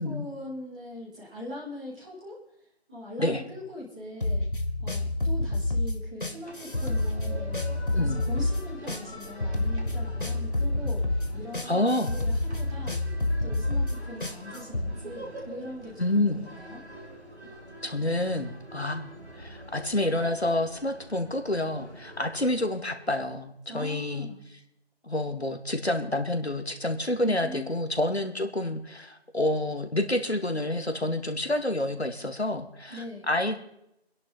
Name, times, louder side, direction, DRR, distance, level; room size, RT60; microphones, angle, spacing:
voice 1, 0.0-2.4 2.9-4.4 4.8-7.6 7.9-11.0 11.3-13.0 13.4-16.8 23.7-24.4 27.2-27.6 32.9-33.3, left 1 dB, 5° right, -12 dB, 3.1 m, -41 dB
sound 1, 4.2-14.9, left 2 dB, 55° left, 1.6 m, -28 dB
sound 2, 6.4-22.7, right 1 dB, 85° right, 4.5 m, -45 dB
voice 2, 11.7-12.1 16.0-16.4 17.4-17.5 17.8-24.3 25.0-33.6, left 1 dB, 80° left, 6 dB, 2.4 m, -28 dB
26.5 x 10.5 x 4.2 m, 0.81 s
figure-of-eight pair, 170°, 32 cm